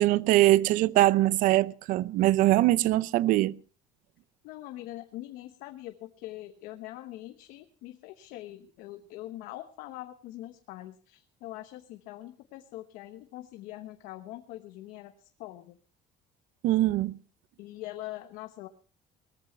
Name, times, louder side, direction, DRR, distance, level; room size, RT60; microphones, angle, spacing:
voice 1, 0.0-3.5 16.6-17.1, right 16 dB, 75° right, 0.7 m, -22 dB
voice 2, 4.4-15.8 17.6-18.7, left 15 dB, 85° left, 1.1 m, -43 dB
19.5 x 14.0 x 4.4 m
cardioid pair, 135°, 14 cm